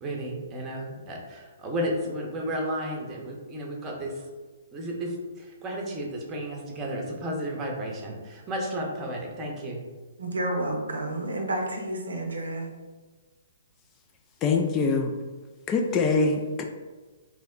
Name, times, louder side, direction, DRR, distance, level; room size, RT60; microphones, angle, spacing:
voice 1, 0.0-4.1 4.7-9.8, equal, 20° right, -1 dB, 0.7 m, -33 dB
voice 2, 10.2-12.7, right 1 dB, 75° right, 3 dB, 0.6 m, -30 dB
voice 3, 14.4-15.1 15.7-16.6, left 4 dB, 25° left, 3 dB, 0.3 m, -24 dB
3.1 x 2.1 x 3.6 m, 1.3 s
figure-of-eight pair, 125°, 0 cm